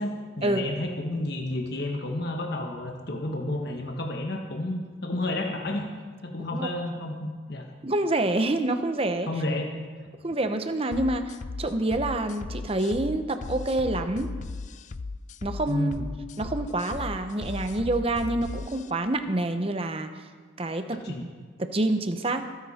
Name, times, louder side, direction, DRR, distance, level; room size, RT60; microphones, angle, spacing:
voice 1, 0.0-5.9 6.2-7.7 9.3-9.7 15.7-16.0 20.9-21.2, left 1 dB, 55° left, 1 dB, 1.3 m, -31 dB
voice 2, 7.8-9.3 10.2-14.3 15.4-15.9 16.4-20.2 20.6-21.3 21.6-22.4, right 2 dB, 30° right, 8 dB, 0.8 m, -27 dB
sound 1, 10.9-18.9, left 3 dB, 35° left, 0.3 m, -37 dB
24.0 x 9.9 x 4.3 m, 1.5 s
head